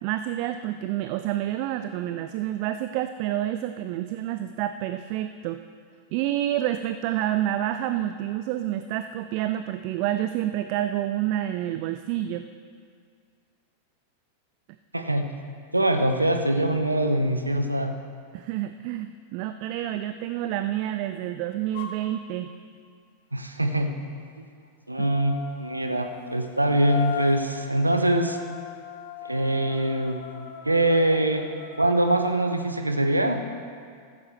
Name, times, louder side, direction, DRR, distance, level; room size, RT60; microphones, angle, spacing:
voice 1, 0.0-5.6 6.1-12.5 18.3-22.5 25.0-25.1, right 12 dB, 45° right, 10 dB, 0.4 m, -28 dB
voice 2, 14.9-15.3 15.7-18.0 23.3-23.9 24.4-24.5 24.9-28.4 29.2-30.2 30.6-31.5 31.8-33.4, right 1 dB, 85° right, 6 dB, 0.8 m, -23 dB
sound 1, 21.7-22.0 24.9-32.3, left 8 dB, 50° left, 1.3 m, -38 dB
15.0 x 14.5 x 3.2 m, 2.1 s
figure-of-eight pair, 90°, 0 cm